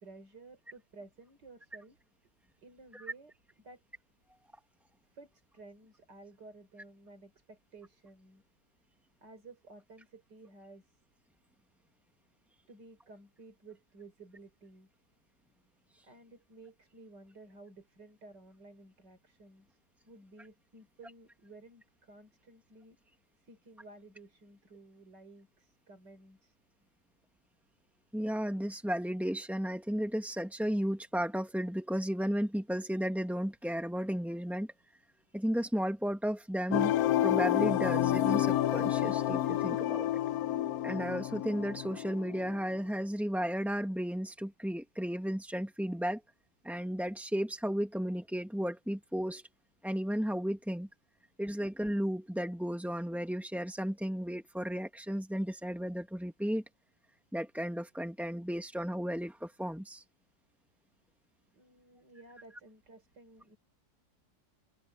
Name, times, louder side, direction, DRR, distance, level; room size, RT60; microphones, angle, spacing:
voice 1, 0.0-2.0 2.6-3.3 3.6-3.8 5.1-8.4 9.2-11.0 12.7-14.9 16.0-19.8 20.0-23.0 23.4-26.5 61.5-63.6, right 3 dB, 65° right, 4.6 m, -54 dB
voice 2, 28.1-34.7 35.3-36.9 37.2-40.1 40.8-46.2 46.6-49.4 49.8-50.9 51.4-56.6 57.3-60.0, equal, ahead, 0.6 m, -34 dB
sound 1, 36.7-42.6, left 12 dB, 75° left, 0.9 m, -29 dB
omnidirectional pair, 2.0 m